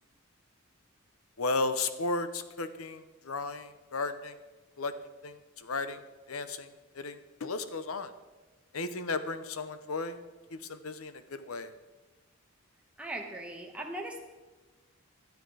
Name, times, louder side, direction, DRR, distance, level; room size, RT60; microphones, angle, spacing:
voice 1, 1.4-4.4 4.8-4.9 5.2-6.0 6.3-6.7 6.9-8.1 8.7-10.2 10.5-11.7, left 3 dB, 75° left, 11 dB, 0.8 m, -34 dB
voice 2, 13.0-14.2, right 1 dB, 5° right, 1 dB, 1.1 m, -39 dB
12.0 x 8.2 x 4.8 m, 1.2 s
head